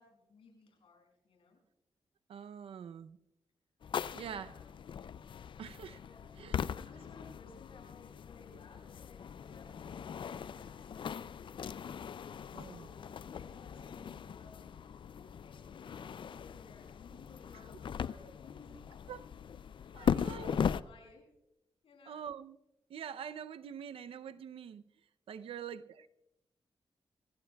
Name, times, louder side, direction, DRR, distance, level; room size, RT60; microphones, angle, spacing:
voice 1, 0.0-1.6 4.1-4.6 6.0-6.3 6.7-11.6 12.5-19.1 19.9-21.3 21.8-22.2 25.4-25.5, left 4 dB, 80° left, 6.7 m, -58 dB
voice 2, 2.3-3.2 4.1-4.5 5.6-6.0 6.4-6.6 12.5-12.9 17.5-17.6 19.1-19.3 19.9-20.6 22.1-22.6 22.9-24.8 25.3-26.1, right 8 dB, 85° right, 0.6 m, -45 dB
sound 1, 3.8-20.8, left 7 dB, 60° left, 0.4 m, -39 dB
25.5 x 17.5 x 2.3 m
cardioid pair, 70°, 9 cm